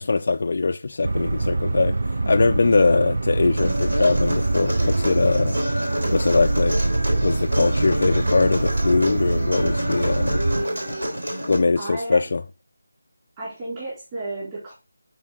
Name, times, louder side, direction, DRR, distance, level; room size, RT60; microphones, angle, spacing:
voice 1, 0.0-2.0 2.3-5.6 6.1-6.8 7.2-10.4 11.5-12.4, left 3 dB, 50° left, 0.3 m, -21 dB
sound 1, 1.0-10.6, right 2 dB, 55° right, 0.4 m, -24 dB
Human voice, 3.6-11.6, equal, 75° right, 3.6 m, -28 dB
voice 2, 11.8-12.2 13.4-14.7, right 2 dB, 25° right, 3.8 m, -32 dB
9.5 x 3.9 x 3.8 m
figure-of-eight pair, 160°, 0 cm